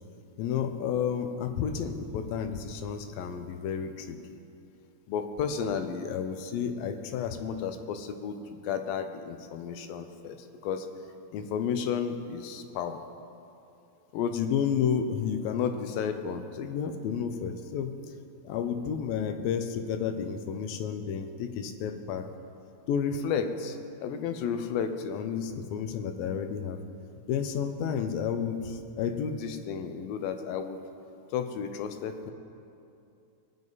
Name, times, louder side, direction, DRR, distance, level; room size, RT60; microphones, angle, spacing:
voice 1, 0.4-4.2 5.1-10.4 10.6-10.9 11.3-13.0 14.1-17.9 18.4-22.3 22.9-26.8 27.3-30.8 31.3-32.3, left 7 dB, 85° left, 7 dB, 2.6 m, -31 dB
21.0 x 9.3 x 4.0 m, 2.6 s
omnidirectional pair, 4.0 m